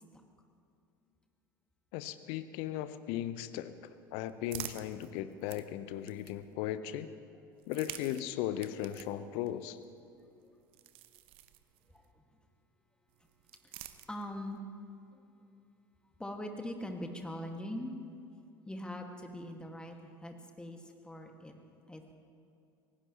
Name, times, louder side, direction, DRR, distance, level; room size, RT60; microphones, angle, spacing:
voice 1, 1.9-3.7 4.1-7.1 7.7-9.8, left 12 dB, 60° left, 13 dB, 0.8 m, -37 dB
sound 1, 3.7-6.7 7.5-12.1 13.1-14.6, right 13 dB, 50° right, 0.8 m, -50 dB
voice 2, 14.1-14.6 15.1-15.2 16.2-17.9 18.7-21.5 21.9-22.1, left 1 dB, 10° left, 3 dB, 2.0 m, -42 dB
25.0 x 18.0 x 3.1 m, 2.6 s
figure-of-eight pair, 70°, 12 cm